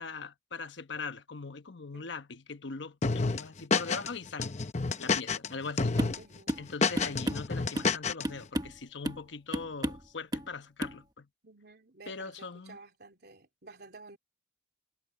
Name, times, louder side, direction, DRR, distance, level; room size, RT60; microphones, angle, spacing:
voice 1, 0.0-4.5 5.0-6.0 6.6-11.3 12.1-12.8, left 4 dB, 80° left, 1.0 m, -41 dB
sound 1, 3.0-4.1 4.4-5.5 5.8-6.2 6.5-8.2, left 4 dB, 40° left, 0.8 m, -29 dB
sound 2, 6.0-6.2 6.5-6.7 7.0-8.0 8.2-8.8 9.0-9.3 9.5-10.1 10.3-10.5 10.8-11.0, equal, 20° right, 1.3 m, -33 dB
voice 2, 6.2-6.6 11.4-14.2, right 3 dB, 60° right, 3.6 m, -52 dB
head